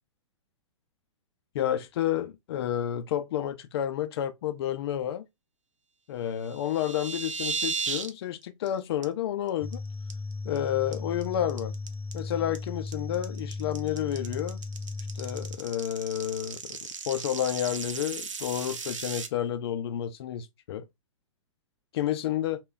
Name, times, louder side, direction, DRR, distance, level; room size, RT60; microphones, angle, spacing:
voice 1, 1.5-5.2 6.1-9.8 10.4-11.7 12.1-14.6 15.1-16.8 17.1-20.9 21.9-22.6, left 11 dB, 50° left, 0.5 m, -30 dB
sound 1, 6.4-8.1 8.4-8.7 9.0-9.1 9.5-9.7 10.1-10.6 10.9-19.3, right 5 dB, 75° right, 0.7 m, -35 dB
sound 2, 9.6-15.6, left 3 dB, 15° left, 0.8 m, -36 dB
3.1 x 2.3 x 3.7 m
figure-of-eight pair, 110°, 16 cm